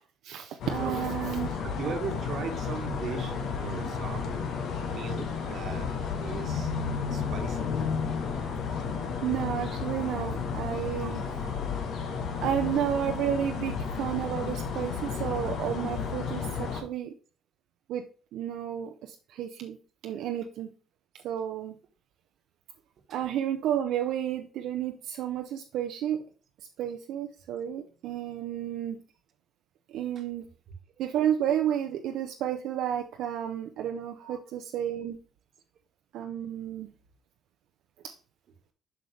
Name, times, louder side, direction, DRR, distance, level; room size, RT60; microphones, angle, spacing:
voice 1, 0.2-1.6 9.2-11.2 12.4-17.1 17.9-18.0 18.3-19.8 20.0-20.7 21.2-21.7 23.1-26.2 26.8-29.0 29.9-30.4 31.0-35.2 36.1-36.9 38.0-38.1, right 10 dB, 75° right, 4 dB, 0.7 m, -31 dB
sound 1, 0.6-16.8, left 5 dB, 60° left, 1.5 m, -32 dB
voice 2, 1.6-4.6 4.9-5.9 6.2-6.7 7.1-7.7 10.9-11.1 11.4-11.5 14.9-15.0 30.1-30.2 34.2-34.5, right 6 dB, 50° right, 6 dB, 1.4 m, -39 dB
7.7 x 5.5 x 3.3 m, 0.38 s
cardioid pair, 140°, 0 cm